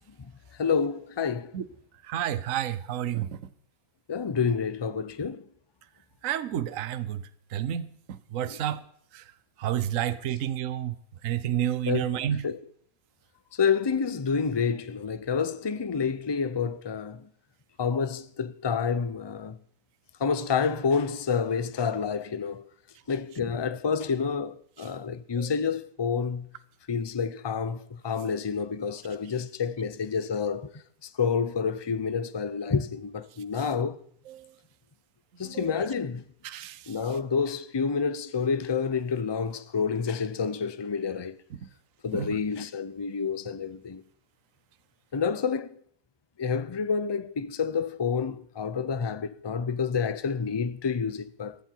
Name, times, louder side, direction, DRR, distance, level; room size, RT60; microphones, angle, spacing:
voice 1, 0.6-1.5 4.1-5.4 8.5-8.6 11.8-12.2 12.4-12.6 13.5-17.3 17.8-19.6 20.2-22.6 23.1-26.5 26.9-34.0 35.4-36.2 36.9-41.3 42.0-44.0 45.1-45.8 46.4-51.6, left 6 dB, 40° left, 0.4 m, -29 dB
voice 2, 2.1-3.4 6.2-7.2 7.5-7.9 8.3-8.8 9.1-9.2 9.6-10.9 11.2-12.5 25.4-25.5 34.3-34.4 35.4-35.7 36.4-36.8 42.1-42.3, right 11 dB, 65° right, 1.2 m, -30 dB
15.5 x 14.5 x 4.6 m
omnidirectional pair, 1.6 m